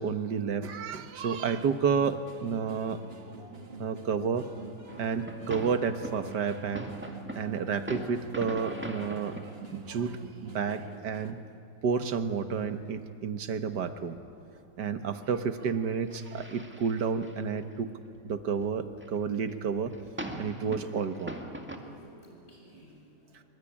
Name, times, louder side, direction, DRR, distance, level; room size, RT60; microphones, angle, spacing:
voice 1, 0.0-3.0 3.8-4.5 5.0-6.9 7.4-9.4 9.7-11.4 11.8-14.2 14.8-17.9 18.2-20.0 20.4-21.4, right 6 dB, 80° right, 9 dB, 1.9 m, -30 dB
sound 1, 1.5-11.3, right 3 dB, 35° right, 2.0 m, -46 dB
sound 2, 4.9-9.6 9.9-10.0 10.9-11.3 11.9-12.7 13.0-13.1 13.4-13.5 13.7-13.8 14.0-14.6 14.9-17.8 18.2-18.6 18.9-21.8, right 1 dB, 5° right, 1.9 m, -42 dB
voice 2, 21.5-23.5, right 1 dB, 40° left, -1 dB, 8.0 m, -55 dB
25.5 x 24.0 x 9.9 m, 2.6 s
omnidirectional pair, 1.8 m